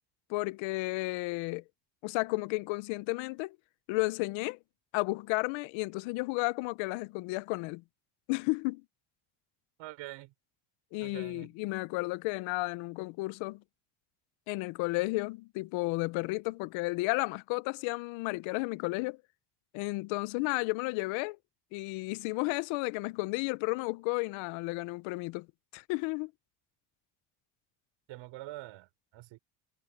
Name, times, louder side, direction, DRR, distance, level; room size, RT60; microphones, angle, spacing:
voice 1, 0.3-1.6 2.0-3.6 3.9-4.6 4.9-7.8 8.3-8.8 10.9-13.6 14.5-19.2 19.7-21.4 21.7-25.5 25.7-26.3, left 24 dB, 85° left, 0.7 m, -33 dB
voice 2, 9.8-10.3 11.0-11.5 28.1-29.4, right 18 dB, 75° right, 5.9 m, -45 dB
cardioid pair, 120°, 45 cm